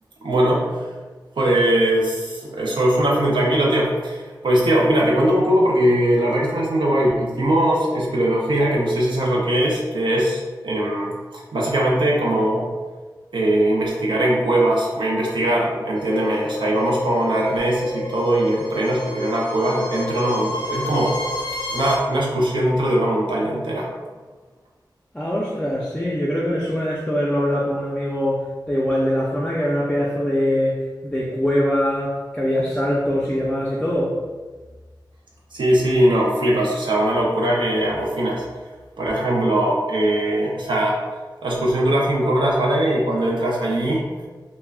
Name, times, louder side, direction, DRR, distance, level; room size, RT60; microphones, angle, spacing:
voice 1, 0.2-0.8 1.4-12.7 13.3-21.2 21.7-23.9 35.5-38.4 39.0-41.0 41.4-44.0, right 1 dB, 90° right, -4 dB, 0.4 m, -20 dB
sound 1, 16.0-22.0, left 2 dB, 85° left, 0.5 m, -30 dB
voice 2, 25.1-34.1, equal, 10° left, -6 dB, 0.4 m, -23 dB
2.3 x 2.0 x 3.4 m, 1.4 s
wide cardioid pair, 80°, 8 cm